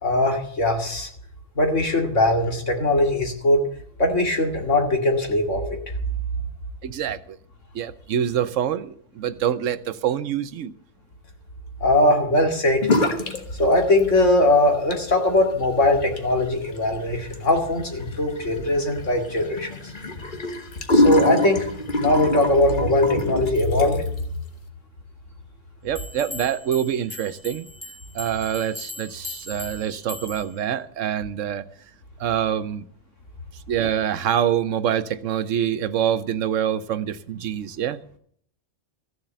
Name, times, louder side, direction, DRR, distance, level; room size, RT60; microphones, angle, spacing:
voice 1, 0.0-1.1 1.6-3.6 4.0-5.8 11.8-12.9 13.6-19.8 20.9-21.7 22.0-24.0, left 1 dB, 75° left, 2 dB, 2.7 m, -20 dB
voice 2, 6.8-7.4 7.7-10.7 25.8-27.7 28.1-31.6 32.2-32.8 33.7-38.0, right 9 dB, 80° right, 14 dB, 1.1 m, -25 dB
sound 1, 12.8-13.4 13.7-14.4 14.7-24.2, left 2 dB, 40° left, 1.5 m, -26 dB
sound 2, 25.9-30.6, left 3 dB, 10° left, 2.3 m, -39 dB
14.5 x 7.4 x 8.1 m, 0.62 s
omnidirectional pair, 1.3 m